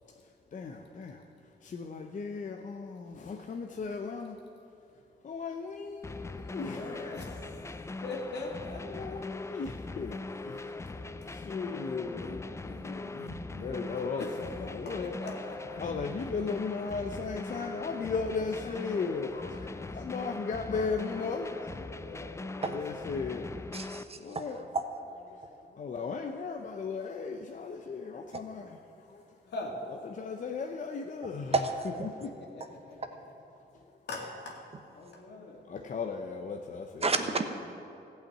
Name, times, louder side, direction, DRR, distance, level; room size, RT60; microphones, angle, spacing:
voice 1, 0.5-1.2 1.6-4.4 5.2-7.1 8.9-10.2 10.4-10.7 11.3-12.2 13.6-15.2 15.8-21.7 22.6-23.5 24.2-24.7 25.3-25.4 25.7-28.8 29.1-29.2 30.2-31.7 32.0-32.3 35.7-37.4, left 4 dB, 50° left, 4 dB, 0.7 m, -36 dB
sound 1, 6.0-24.0, left 3 dB, 15° left, 0.4 m, -41 dB
voice 2, 6.5-9.2 10.4-10.5 11.5-13.8 14.2-15.8 21.7-22.6 22.9-23.3 29.5-29.8 32.2-33.2 34.1-35.6, left 2 dB, 85° left, -1 dB, 2.3 m, -43 dB
voice 3, 23.7-24.4 24.7-24.8 31.5-32.1 37.0-37.4, right 3 dB, 35° right, 7 dB, 1.0 m, -30 dB
15.5 x 5.7 x 8.7 m, 2.7 s
cardioid pair, 100°, 17 cm